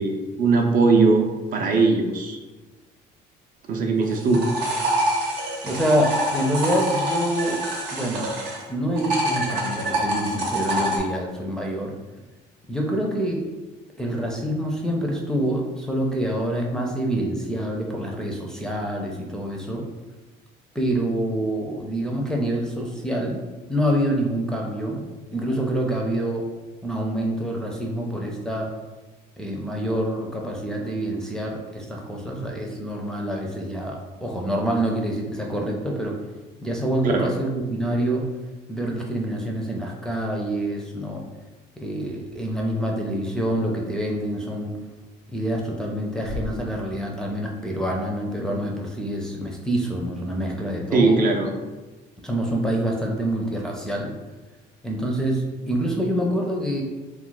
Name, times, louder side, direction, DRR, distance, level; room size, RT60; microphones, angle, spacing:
voice 1, 0.0-2.4 3.7-4.5 37.0-37.3 50.9-51.5, right 3 dB, 55° right, 3 dB, 0.5 m, -20 dB
sound 1, 4.0-8.6 9.0-11.0, right 1 dB, 85° right, 0.8 m, -26 dB
voice 2, 5.6-7.6 7.9-8.3 8.7-11.9 12.7-13.4 14.0-19.8 20.7-23.4 23.7-26.5 26.8-28.7 29.4-36.2 36.6-38.2 38.7-41.2 41.8-44.7 45.3-51.2 52.2-54.1 54.8-56.8, right 1 dB, 5° left, -1 dB, 0.4 m, -26 dB
sound 2, 42.0-42.1 42.8-43.0 44.5-44.9 45.2-45.7 46.0-47.2 47.5-47.6 47.8-48.1, left 2 dB, 85° left, 0.7 m, -37 dB
2.3 x 2.2 x 3.8 m, 1.2 s
cardioid pair, 110°, 17 cm